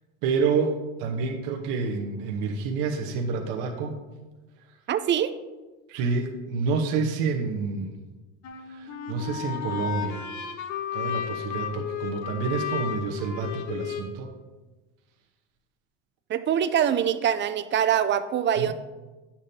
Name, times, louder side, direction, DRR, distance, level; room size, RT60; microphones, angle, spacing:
voice 1, 0.2-3.9 5.9-7.9 8.7-10.2 10.9-14.3 18.6-18.7, right 4 dB, 65° right, 2 dB, 1.0 m, -28 dB
voice 2, 4.9-5.3 16.3-18.7, right 9 dB, 35° right, 12 dB, 0.5 m, -24 dB
sound 1, 8.4-14.0, left 8 dB, 50° left, 0.9 m, -33 dB
9.5 x 7.0 x 2.7 m, 1.2 s
supercardioid pair, 95°, 35 cm